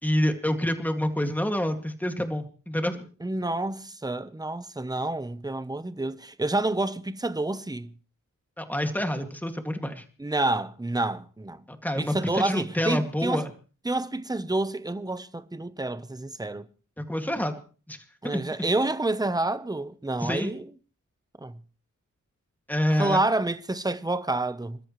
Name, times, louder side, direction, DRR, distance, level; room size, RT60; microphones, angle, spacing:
voice 1, 0.0-3.1 8.6-10.0 11.7-13.5 17.0-17.6 17.9-18.0 18.3-18.4 20.2-20.5 22.7-23.2, left 1 dB, 5° left, 2.2 m, -27 dB
voice 2, 3.2-7.9 10.2-11.6 12.0-13.4 13.8-16.6 18.2-20.7 21.4-21.6 22.9-24.8, right 2 dB, 10° right, 0.9 m, -28 dB
27.5 x 13.5 x 3.2 m
wide cardioid pair, 90°, 32 cm